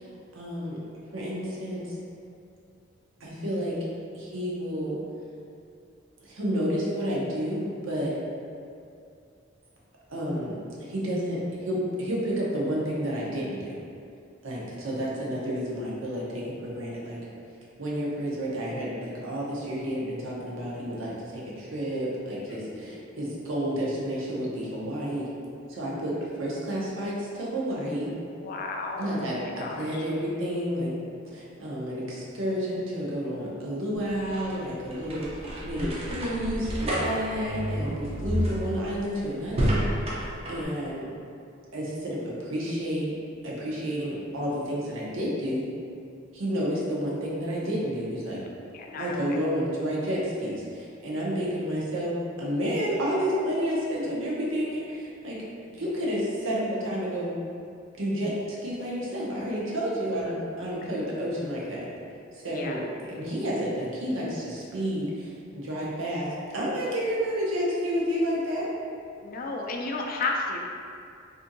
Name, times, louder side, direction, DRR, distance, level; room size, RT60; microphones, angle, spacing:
voice 1, 0.3-0.8 1.1-2.0 3.2-3.8 4.1-5.0 6.2-8.1 10.1-13.8 14.4-17.2 17.8-25.3 25.7-28.1 29.0-30.9 31.2-39.9 40.5-41.1 41.7-43.1 43.4-45.7 46.3-48.4 48.9-57.3 58.0-61.8 62.4-62.8 63.1-66.3 66.5-68.7, equal, 80° right, -5 dB, 0.7 m, -30 dB
voice 2, 22.5-23.0 28.4-29.3 29.6-30.0 48.7-49.2 60.8-60.9 62.5-62.8 69.2-70.6, left 3 dB, 45° left, 1 dB, 0.3 m, -33 dB
sound 1, 34.0-40.7, equal, 30° right, 0.4 m, -30 dB
2.6 x 2.6 x 2.5 m, 2.4 s
head